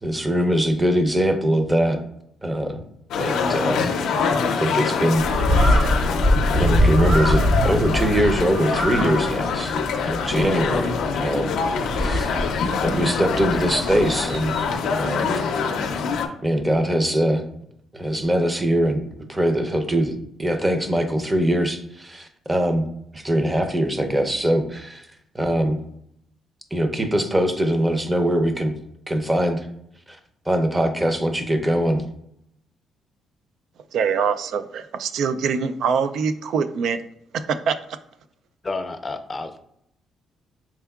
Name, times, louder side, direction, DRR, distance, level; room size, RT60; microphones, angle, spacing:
voice 1, 0.0-2.0 2.4-2.8 3.2-3.9 4.3-5.2 5.6-6.0 6.5-9.8 10.1-11.5 11.9-12.4 12.8-14.6 14.9-15.4 16.4-17.4 17.9-19.0 19.3-22.9 23.1-25.1 25.3-25.8 26.7-28.8 29.1-29.7 30.1-30.2 30.5-32.0, right 1 dB, 15° right, 7 dB, 0.6 m, -22 dB
sound 1, 3.1-16.3, left 5 dB, 80° left, 0.5 m, -25 dB
Bird, 5.2-14.8, equal, 45° right, 1.3 m, -24 dB
voice 2, 33.9-37.0 37.3-37.8, right 6 dB, 75° right, 10 dB, 0.3 m, -23 dB
voice 3, 38.6-39.6, left 3 dB, 30° left, 7 dB, 0.5 m, -30 dB
4.5 x 3.5 x 2.3 m, 0.73 s
cardioid pair, 90°, 0 cm